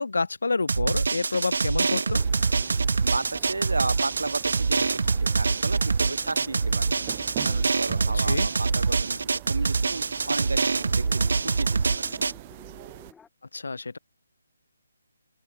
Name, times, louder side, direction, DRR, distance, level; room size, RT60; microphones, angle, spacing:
voice 1, 0.0-2.2 8.1-8.5 13.5-14.0, left 3 dB, 75° left, 1.6 m, -28 dB
Drum, 0.7-12.3, right 4 dB, 70° right, 1.8 m, -25 dB
sound 1, 1.9-13.3, left 6 dB, 5° left, 3.6 m, -55 dB
sound 2, 2.1-13.1, right 17 dB, 25° right, 2.8 m, -43 dB
voice 2, 3.0-7.2 7.4-11.9, right 3 dB, 85° right, 6.4 m, -33 dB
open air
figure-of-eight pair, 155°, 0 cm